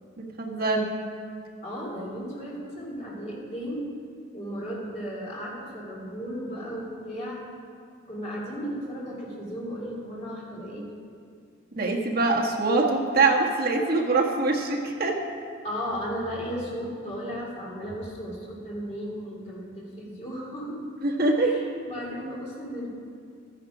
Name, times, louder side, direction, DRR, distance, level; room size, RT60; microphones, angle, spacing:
voice 1, 0.2-0.9 11.8-15.2 21.0-21.5, right 3 dB, 50° right, -1 dB, 1.5 m, -23 dB
voice 2, 1.6-3.9 4.3-7.4 8.1-10.9 15.6-20.9 21.4-22.9, equal, 35° left, -4 dB, 2.9 m, -35 dB
13.5 x 10.0 x 5.0 m, 2.3 s
head